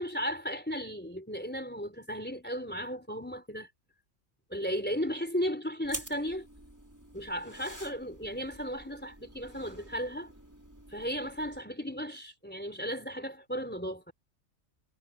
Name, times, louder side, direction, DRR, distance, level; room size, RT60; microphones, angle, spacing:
voice 1, 0.0-3.7 4.5-6.5 7.1-10.3 10.9-14.1, equal, 10° left, 3.6 m, -35 dB
sound 1, 5.8-11.6, right 1 dB, 15° right, 3.5 m, -47 dB
omnidirectional pair, 1.3 m